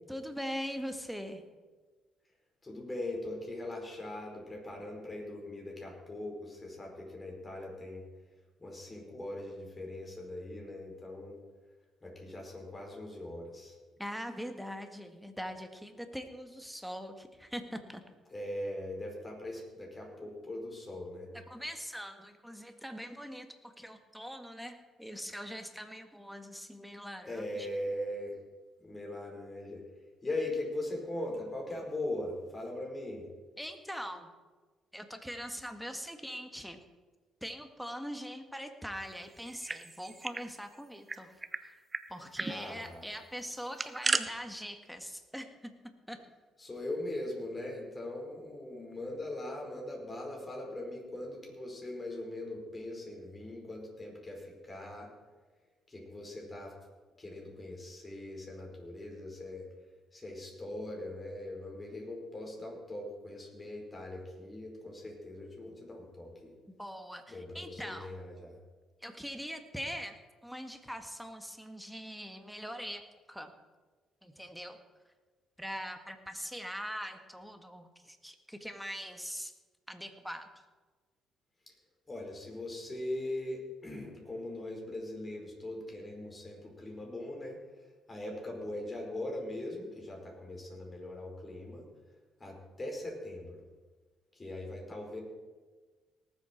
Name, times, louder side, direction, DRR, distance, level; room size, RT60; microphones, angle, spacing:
voice 1, 0.1-1.4 14.0-18.0 21.3-27.7 33.6-34.3 34.9-36.8 37.4-41.8 42.1-45.7 46.1-46.2 66.7-68.1 69.0-70.2 70.4-73.5 74.2-74.8 75.6-79.5 79.9-80.5, equal, ahead, 6 dB, 1.8 m, -42 dB
voice 2, 2.6-8.0 8.6-11.4 12.0-13.7 18.3-21.3 27.2-28.4 28.8-29.8 30.2-33.3 42.5-43.1 46.6-55.1 55.9-56.7 57.2-59.7 60.1-66.5 67.3-68.6 82.1-91.9 92.4-93.6 94.3-95.2, left 1 dB, 30° left, 0 dB, 5.0 m, -40 dB
sound 1, 39.4-40.5 40.7-40.8 41.1-41.6 41.9-42.0 42.4-42.6 43.5-44.2, right 3 dB, 25° right, 0.8 m, -34 dB
19.0 x 7.9 x 4.6 m, 1.3 s
hypercardioid pair, 50°, 0 cm